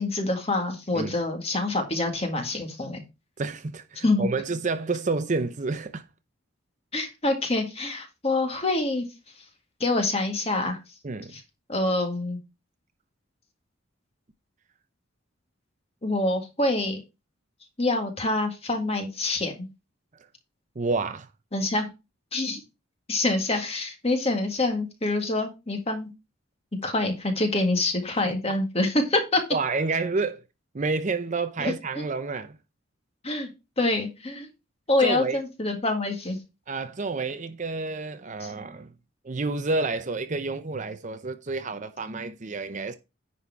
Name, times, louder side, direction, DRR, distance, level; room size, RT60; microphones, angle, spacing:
voice 1, 0.0-3.0 4.0-4.3 6.9-9.1 9.8-10.8 11.3-11.4 11.7-12.4 16.0-17.0 17.8-19.7 21.5-21.9 22.3-22.6 23.1-26.1 26.8-29.4 31.6-32.1 33.2-33.5 33.8-34.5 34.9-36.4 38.4-38.5, left 2 dB, 30° left, 1.8 m, -26 dB
voice 2, 3.4-6.0 11.0-11.4 20.8-21.3 29.5-30.4 30.7-32.6 35.0-35.4 36.7-38.9 39.2-42.9, right 3 dB, 35° right, 0.6 m, -29 dB
9.8 x 4.3 x 4.6 m
head